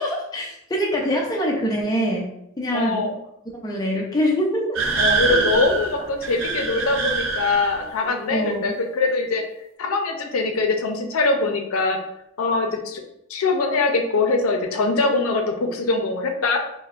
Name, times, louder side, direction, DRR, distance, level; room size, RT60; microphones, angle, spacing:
voice 1, 0.0-2.3 2.6-3.1 3.6-4.8 5.3-5.5 8.3-8.7, equal, 20° left, -2 dB, 0.4 m, -24 dB
voice 2, 2.7-3.1 5.0-9.4 9.8-12.0 12.4-13.0 13.3-16.6, left 3 dB, 90° left, 4 dB, 0.5 m, -22 dB
sound 1, 4.7-7.9, right 4 dB, 70° right, 0.5 m, -24 dB
4.5 x 2.1 x 2.4 m, 0.80 s
head